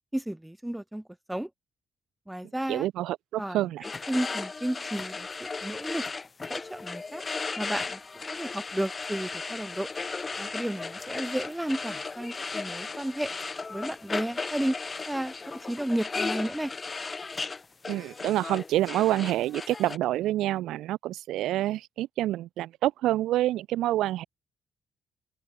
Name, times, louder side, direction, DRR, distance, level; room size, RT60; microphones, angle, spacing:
voice 1, 0.1-1.0 1.3-1.5 2.3-2.9 3.4-6.0 6.5-7.2 7.6-9.9 10.4-13.3 13.7-14.8 15.1-16.7, right 1 dB, 5° right, 0.9 m, -33 dB
voice 2, 2.7-3.8 17.9-24.2, right 14 dB, 85° right, 1.3 m, -27 dB
sound 1, 3.8-20.0, left 4 dB, 30° left, 0.7 m, -36 dB
open air
cardioid pair, 90°, 0 cm